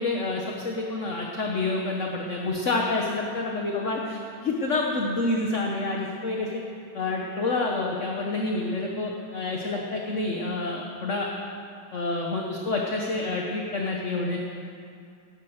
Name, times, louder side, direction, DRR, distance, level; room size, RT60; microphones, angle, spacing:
voice 1, 0.0-6.6 6.9-11.3 11.9-14.4, left 2 dB, 40° left, 0 dB, 1.3 m, -28 dB
18.5 x 10.5 x 6.5 m, 2.4 s
omnidirectional pair, 2.3 m